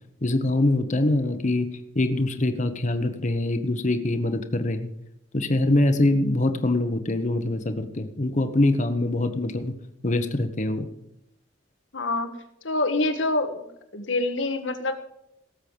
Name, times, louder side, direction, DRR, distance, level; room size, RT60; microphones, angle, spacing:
voice 1, 0.2-1.7 1.9-4.9 5.3-9.7 10.0-10.9, left 2 dB, 40° left, 8 dB, 1.1 m, -24 dB
voice 2, 11.9-12.3 12.6-13.7 13.9-15.0, left 2 dB, 85° left, 8 dB, 1.5 m, -26 dB
17.5 x 7.7 x 5.2 m, 0.81 s
head